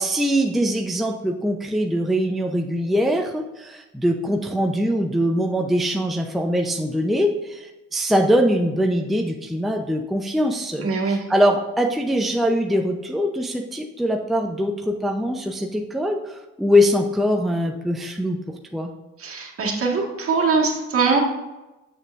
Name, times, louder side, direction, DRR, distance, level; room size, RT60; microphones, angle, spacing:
voice 1, 0.0-18.4 18.7-18.9, equal, ahead, 2 dB, 0.6 m, -22 dB
voice 2, 10.8-11.2 19.2-21.2, right 4 dB, 50° right, 0 dB, 1.7 m, -22 dB
7.0 x 6.3 x 2.5 m, 1.1 s
supercardioid pair, 65°, 29 cm